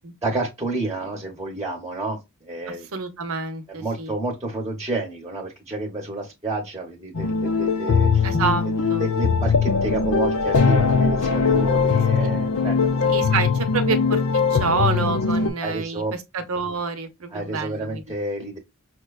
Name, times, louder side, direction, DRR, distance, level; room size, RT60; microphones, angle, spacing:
voice 1, 0.2-2.9 3.7-8.3 9.0-13.1 15.4-16.1 17.3-18.6, right 2 dB, 15° right, 0.9 m, -30 dB
voice 2, 2.7-4.1 8.2-9.1 13.1-16.0 16.3-18.0, right 4 dB, 70° right, 0.8 m, -27 dB
sound 1, 7.1-15.5, left 5 dB, 70° left, 0.6 m, -20 dB
5.9 x 2.2 x 2.2 m
head